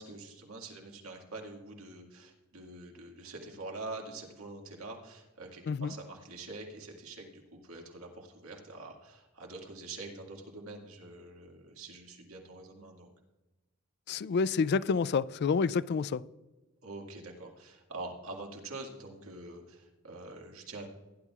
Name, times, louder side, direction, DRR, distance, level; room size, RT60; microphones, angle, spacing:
voice 1, 0.0-13.1 16.8-20.9, right 2 dB, 75° right, 2.0 m, -45 dB
voice 2, 14.1-16.2, left 5 dB, 50° left, 0.3 m, -28 dB
17.0 x 11.0 x 2.4 m
head